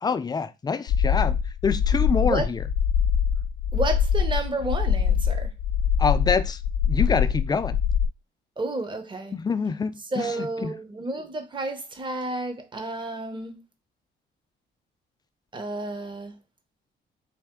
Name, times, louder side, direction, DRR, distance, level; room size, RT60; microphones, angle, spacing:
voice 1, 0.0-1.4 1.6-2.6 6.0-6.6 6.9-7.8 9.3-10.7, left 5 dB, 20° left, 0.4 m, -26 dB
sound 1, 0.9-8.1, left 7 dB, 75° left, 0.5 m, -23 dB
voice 2, 3.7-5.5 8.6-9.4 10.1-13.6 15.5-16.3, right 2 dB, 25° right, 0.9 m, -31 dB
4.1 x 2.5 x 3.7 m
cardioid pair, 90°, 20 cm